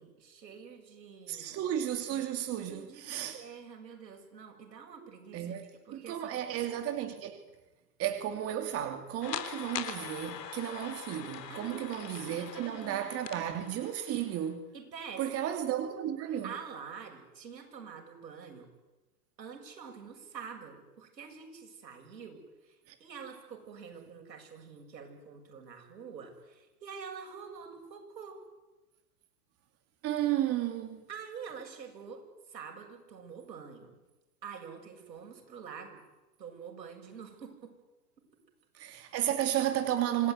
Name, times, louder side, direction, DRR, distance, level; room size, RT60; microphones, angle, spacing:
voice 1, 0.0-1.6 2.6-3.0 3.3-6.4 11.5-11.8 12.3-13.0 14.7-15.3 16.4-18.7 19.4-28.4 31.1-32.2 32.5-34.0 34.4-36.0 36.4-37.7, right 6 dB, 80° right, 3 dB, 7.5 m, -46 dB
voice 2, 1.3-3.4 5.3-7.4 8.0-14.6 15.2-16.5 22.9-23.0 30.0-31.0 38.7-40.3, right 11 dB, 30° right, 6 dB, 2.6 m, -33 dB
sound 1, 9.2-14.5, left 9 dB, 70° left, 3.8 m, -42 dB
27.0 x 18.5 x 9.7 m, 1.1 s
hypercardioid pair, 130°, 50 cm